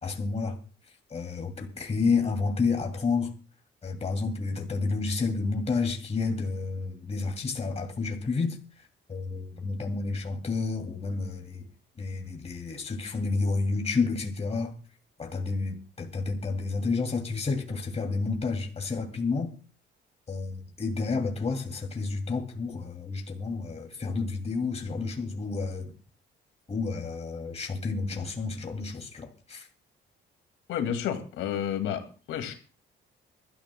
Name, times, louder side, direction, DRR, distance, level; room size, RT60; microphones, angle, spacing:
voice 1, 0.0-0.6 1.1-3.3 3.8-8.6 9.1-11.7 12.0-14.7 15.2-19.5 20.3-25.9 26.7-29.7, left 4 dB, 30° left, 2.6 m, -30 dB
voice 2, 30.7-32.5, left 9 dB, 90° left, 2.2 m, -31 dB
25.0 x 13.0 x 2.2 m
cardioid pair, 90°, 20 cm